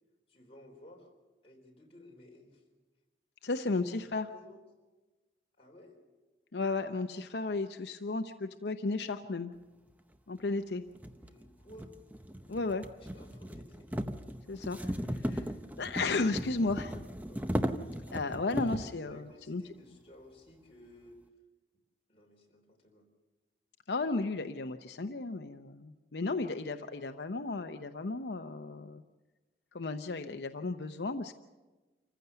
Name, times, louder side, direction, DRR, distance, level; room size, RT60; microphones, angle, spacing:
voice 1, 0.3-1.1 1.4-2.6 3.8-4.6 5.6-6.0 11.2-11.9 13.1-13.9 15.3-15.6 17.2-17.4 18.5-21.2 22.1-23.1, left 1 dB, 30° left, 0 dB, 3.9 m, -56 dB
voice 2, 3.4-4.3 6.5-9.5 10.3-10.8 12.5-12.9 14.5-15.5 15.8-16.9 18.1-19.6 23.9-29.0 29.7-31.3, left 3 dB, 80° left, 8 dB, 0.7 m, -34 dB
sound 1, 10.1-10.2 11.0-19.0, equal, 10° right, 0.7 m, -37 dB
26.5 x 15.0 x 6.9 m, 1.2 s
head